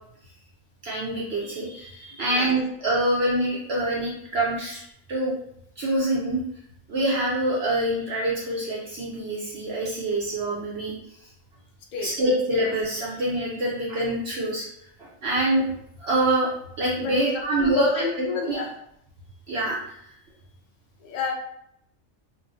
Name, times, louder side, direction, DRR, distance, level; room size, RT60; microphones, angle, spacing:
voice 1, 0.8-4.8 5.1-5.3 5.8-6.4 6.9-10.9 12.0-14.6 15.0-15.7 16.0-16.5 16.8-17.9 18.5-18.6 19.5-20.1, right 1 dB, 60° right, -5 dB, 0.7 m, -25 dB
voice 2, 17.0-18.7 21.0-21.3, left 5 dB, 85° left, 1 dB, 0.4 m, -30 dB
2.9 x 2.2 x 2.5 m, 0.74 s
omnidirectional pair, 1.4 m